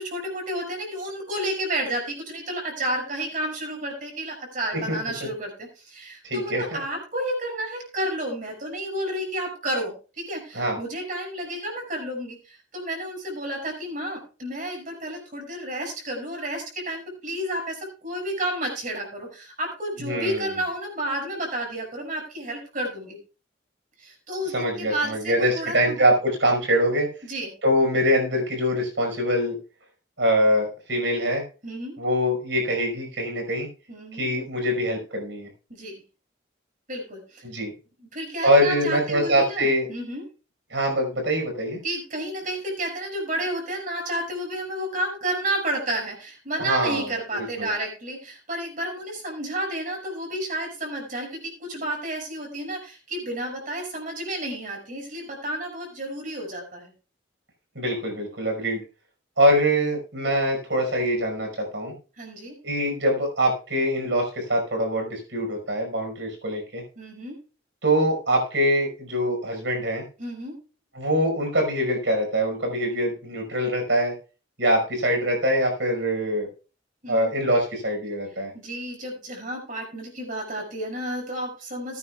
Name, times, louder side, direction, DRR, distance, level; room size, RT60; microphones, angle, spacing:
voice 1, 0.0-23.2 24.0-26.0 27.2-27.5 31.6-31.9 33.9-34.3 35.7-36.0 36.9-37.4 38.1-40.2 41.8-56.9 62.2-62.6 67.0-67.3 70.2-70.6 77.0-77.3 78.5-82.0, right 1 dB, 45° right, 0 dB, 6.1 m, -31 dB
voice 2, 6.2-6.6 10.5-10.8 20.0-20.5 24.5-27.1 27.6-29.6 30.2-31.4 32.0-33.7 34.1-35.5 37.4-37.7 38.4-39.9 40.7-41.8 46.6-47.1 47.3-47.7 57.8-58.8 59.4-61.9 62.6-66.8 67.8-70.0 70.9-74.1 74.6-76.5 77.1-78.5, equal, 85° right, 2 dB, 5.4 m, -23 dB
20.5 x 9.5 x 2.4 m, 0.34 s
head